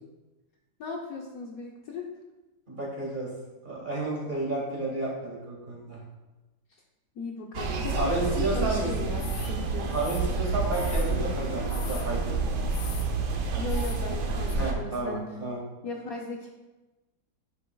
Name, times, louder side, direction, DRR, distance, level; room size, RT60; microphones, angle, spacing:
voice 1, 0.8-2.1 7.2-9.9 13.5-15.3 15.8-16.5, left 3 dB, 65° left, 0 dB, 1.1 m, -37 dB
voice 2, 2.7-3.3 3.6-6.0 7.9-8.9 9.9-12.7 14.6-15.6, right 2 dB, 30° right, -4 dB, 1.9 m, -31 dB
sound 1, 7.5-14.7, right 3 dB, 75° right, 1.4 m, -29 dB
sound 2, 9.2-9.5 9.9-11.2 11.7-12.1 12.7-13.1 13.6-14.0 14.5-14.6, left 8 dB, 80° left, 1.3 m, -43 dB
10.5 x 5.3 x 2.3 m, 1.1 s
omnidirectional pair, 1.8 m